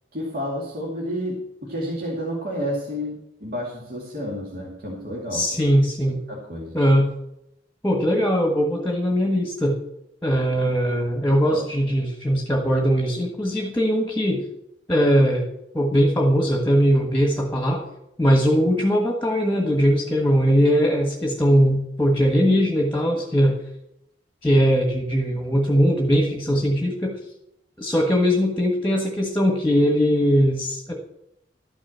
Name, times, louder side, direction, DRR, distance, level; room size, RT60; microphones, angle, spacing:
voice 1, 0.1-5.4 6.1-6.7 11.5-11.6, equal, 55° right, -3 dB, 2.3 m, -30 dB
voice 2, 5.3-6.2 6.7-7.1 7.8-9.7 10.2-14.4 14.9-15.4 15.7-17.8 18.2-23.5 24.4-27.2 27.8-30.9, equal, 10° left, 1 dB, 1.4 m, -20 dB
12.5 x 6.2 x 7.5 m, 0.82 s
head